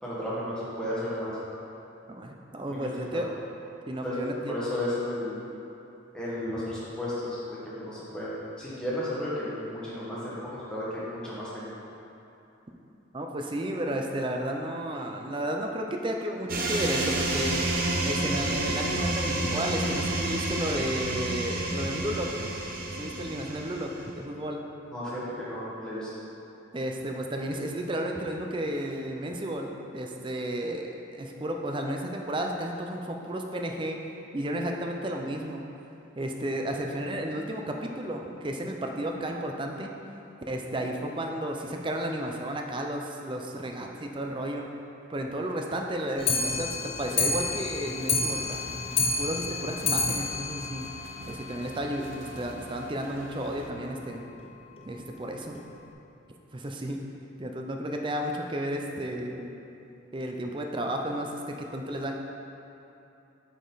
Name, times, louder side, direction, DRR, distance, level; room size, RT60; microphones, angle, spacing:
voice 1, 0.0-1.3 2.7-2.9 4.0-4.2 4.5-5.4 6.1-11.7 24.9-26.1, left 1 dB, 5° left, -10 dB, 1.5 m, -33 dB
voice 2, 2.1-3.3 3.9-4.5 13.1-17.6 18.0-22.5 23.0-24.6 26.7-34.0 34.3-35.6 36.2-39.9 40.5-44.7 45.1-48.8 49.2-50.9 51.3-54.2 54.8-55.6 56.5-57.0 57.4-59.5 60.1-62.1, right 1 dB, 25° right, 2 dB, 0.5 m, -33 dB
sound 1, 16.5-24.1, right 2 dB, 45° right, 0.8 m, -29 dB
Clock, 46.2-51.7 52.0-52.1 52.4-52.5 52.8-52.9 53.2-53.3 54.0-54.1 54.8-54.9 55.6-55.7, left 3 dB, 30° left, 0.5 m, -29 dB
sound 2, 47.0-53.7, right 3 dB, 70° right, 0.5 m, -47 dB
7.9 x 5.2 x 3.9 m, 2.9 s
head